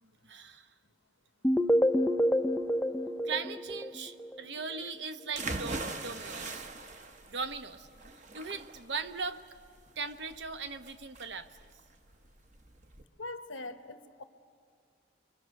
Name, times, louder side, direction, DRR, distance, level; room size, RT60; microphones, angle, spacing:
voice 1, 0.0-0.7 3.2-6.7 7.3-7.9 8.1-9.4 10.0-11.5, right 4 dB, 65° right, 10 dB, 0.9 m, -39 dB
sound 1, 1.4-4.4, equal, 5° left, 0.5 m, -27 dB
sound 2, 5.3-13.0, right 3 dB, 40° right, 1.0 m, -41 dB
voice 2, 13.2-14.2, left 2 dB, 90° left, 9 dB, 1.1 m, -42 dB
26.0 x 23.0 x 6.5 m, 2.3 s
head